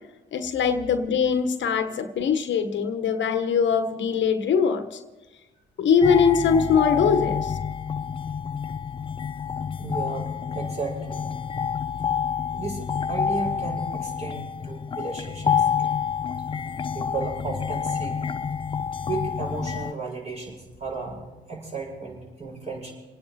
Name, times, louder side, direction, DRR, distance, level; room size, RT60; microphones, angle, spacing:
voice 1, 0.3-5.0 5.8-7.6, left 6 dB, 70° left, 7 dB, 1.4 m, -22 dB
sound 1, 6.0-19.9, left 7 dB, 25° left, 0.4 m, -28 dB
voice 2, 9.8-11.2 12.5-16.0 16.9-18.2 19.0-22.9, right 4 dB, 35° right, -1 dB, 6.9 m, -34 dB
28.5 x 9.5 x 4.3 m, 1.2 s
cardioid pair, 90°, 20 cm